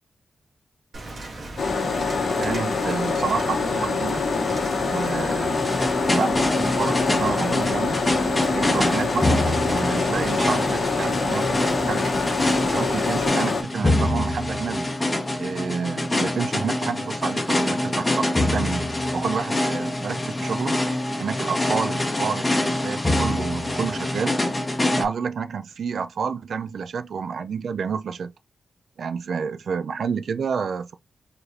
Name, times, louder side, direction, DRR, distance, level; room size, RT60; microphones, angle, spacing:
Rain, 0.9-13.3, right 2 dB, 50° right, 1.7 m, -37 dB
sound 1, 1.6-13.6, left 4 dB, 60° left, 0.9 m, -25 dB
voice 1, 2.4-4.2 4.8-5.7 6.1-8.0 8.5-12.1 12.6-14.9 15.4-18.9 19.1-20.7 21.2-24.4 25.0-28.3 29.0-30.9, right 6 dB, 70° right, 0.4 m, -29 dB
sound 2, 5.5-25.0, left 1 dB, 15° left, 0.9 m, -25 dB
4.8 x 3.2 x 2.6 m
wide cardioid pair, 135°, 0 cm